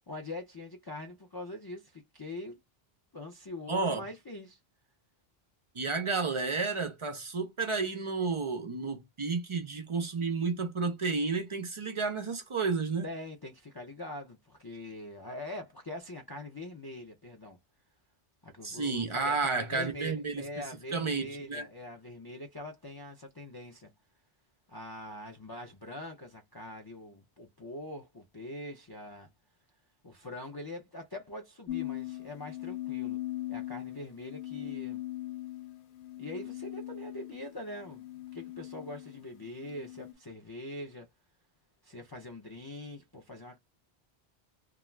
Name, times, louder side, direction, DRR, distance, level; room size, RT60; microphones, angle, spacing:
voice 1, 0.1-2.6 3.1-4.6 13.0-17.6 18.4-23.9 24.7-29.3 30.0-33.2 33.5-35.0 36.2-38.1 38.3-41.1 41.8-43.6, left 1 dB, 40° left, 0.3 m, -43 dB
voice 2, 3.7-4.0 5.7-13.1 18.6-20.4 20.9-21.7, right 4 dB, 50° right, 0.4 m, -31 dB
sound 1, 31.7-40.1, left 15 dB, 80° left, 0.8 m, -40 dB
2.3 x 2.2 x 3.1 m
omnidirectional pair, 1.1 m